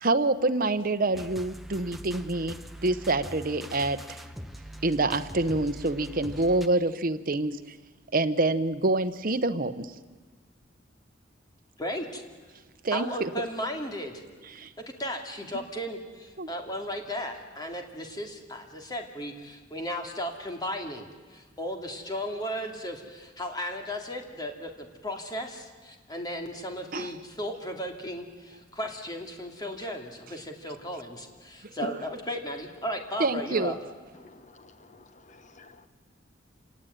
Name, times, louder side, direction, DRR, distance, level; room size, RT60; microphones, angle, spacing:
voice 1, 0.0-2.6 2.8-4.2 4.8-7.6 8.1-9.9 12.8-13.3 14.5-14.7 16.4-16.5 26.9-27.1 31.8-32.0 33.2-33.8, right 2 dB, 45° right, 10 dB, 1.0 m, -26 dB
sound 1, 1.1-6.7, equal, ahead, 1.0 m, -43 dB
voice 2, 11.8-12.2 12.9-14.2 14.9-21.1 21.3-33.7, equal, 20° left, 3 dB, 2.6 m, -35 dB
voice 3, 34.1-35.9, left 3 dB, 40° left, 10 dB, 1.2 m, -54 dB
28.0 x 18.0 x 9.3 m, 1.5 s
head